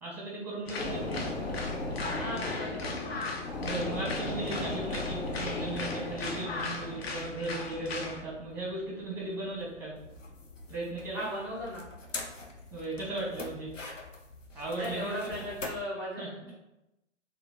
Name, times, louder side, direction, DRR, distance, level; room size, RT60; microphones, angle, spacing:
voice 1, 0.0-1.2 3.6-9.9 10.7-11.2 12.7-13.7 14.5-15.1 16.2-16.5, right 2 dB, 5° right, -4 dB, 0.8 m, -37 dB
sound 1, 0.6-8.2, left 3 dB, 55° left, 0.7 m, -38 dB
sound 2, 0.7-10.7 11.1-11.2, left 2 dB, 75° left, 1.0 m, -38 dB
voice 2, 2.2-3.1 11.1-11.9 14.8-16.5, left 1 dB, 20° left, -6 dB, 0.4 m, -37 dB
sound 3, 5.0-15.7, left 3 dB, 90° left, 0.7 m, -45 dB
3.9 x 2.2 x 3.1 m, 0.91 s
figure-of-eight pair, 120°, 37 cm